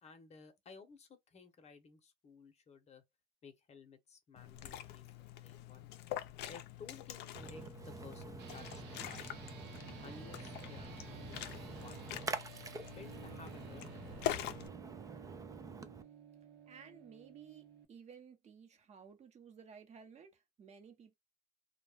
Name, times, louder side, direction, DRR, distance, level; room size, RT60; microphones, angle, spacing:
voice 1, 0.0-3.0 3.4-5.9 6.5-9.3 10.0-12.1 13.0-14.0, left 5 dB, 40° left, 0.8 m, -56 dB
Liquid, 4.4-14.7, left 12 dB, 85° left, 0.4 m, -45 dB
Splash splatter, 7.3-16.0, right 4 dB, 20° right, 0.3 m, -47 dB
sound 1, 8.4-17.8, right 8 dB, 85° right, 0.8 m, -55 dB
voice 2, 16.7-21.1, right 6 dB, 40° right, 0.8 m, -56 dB
2.2 x 2.1 x 3.2 m
cardioid pair, 110°, 17 cm